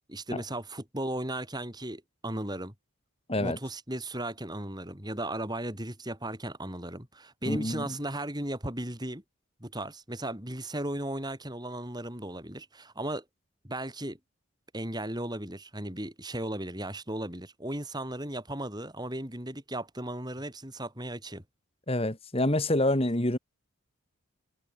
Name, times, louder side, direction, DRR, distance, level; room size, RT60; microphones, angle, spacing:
voice 1, 0.1-2.7 3.4-9.2 9.6-13.2 13.6-14.2 14.7-21.4, right 1 dB, 20° right, 8.0 m, -36 dB
voice 2, 7.5-8.0 21.9-23.4, left 1 dB, 25° left, 2.0 m, -27 dB
head